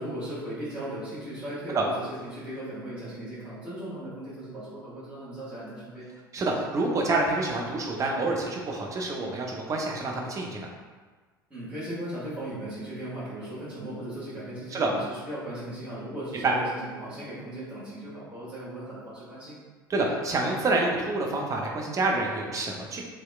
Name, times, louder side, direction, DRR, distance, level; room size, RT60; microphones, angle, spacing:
voice 1, 0.0-6.1 11.5-19.6, right 1 dB, 10° right, -12 dB, 1.3 m, -37 dB
voice 2, 6.3-10.7 14.7-14.9 16.4-16.5 19.9-23.0, right 2 dB, 30° right, 0 dB, 0.5 m, -27 dB
2.8 x 2.1 x 2.2 m, 1.4 s
figure-of-eight pair, 65°, 11 cm